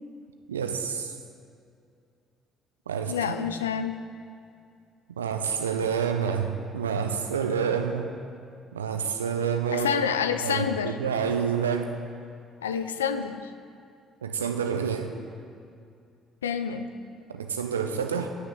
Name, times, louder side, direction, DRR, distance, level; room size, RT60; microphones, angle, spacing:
voice 1, 0.5-1.1 2.9-3.3 5.2-8.2 8.7-9.9 10.4-11.9 14.2-15.1 17.3-18.3, right 7 dB, 90° right, 6 dB, 0.5 m, -28 dB
voice 2, 3.1-4.0 9.7-11.0 12.6-13.5 16.4-16.9, left 7 dB, 85° left, 9 dB, 0.4 m, -28 dB
9.6 x 6.3 x 6.3 m, 2.4 s
hypercardioid pair, 50°, 0 cm